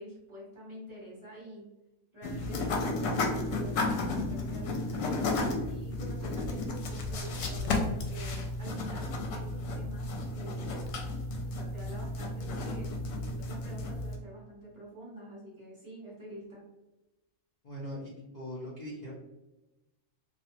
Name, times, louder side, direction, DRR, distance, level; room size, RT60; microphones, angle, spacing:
voice 1, 0.0-1.7 2.1-10.8 11.5-12.9 13.4-16.6, right 1 dB, 25° right, -7 dB, 0.8 m, -47 dB
sound 1, 2.2-14.2, left 2 dB, 80° left, 1.0 m, -33 dB
voice 2, 17.6-19.1, equal, 50° left, -6 dB, 0.5 m, -41 dB
2.4 x 2.3 x 2.8 m, 1.0 s
omnidirectional pair, 1.3 m